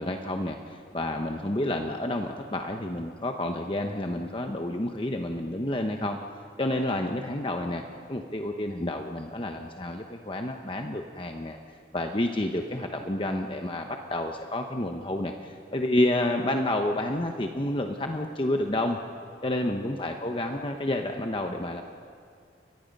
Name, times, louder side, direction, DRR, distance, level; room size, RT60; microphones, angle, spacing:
voice 1, 0.0-6.2 6.6-7.8 8.1-19.0 19.4-21.8, left 1 dB, 30° left, 4 dB, 1.0 m, -29 dB
29.5 x 23.5 x 5.4 m, 2.3 s
head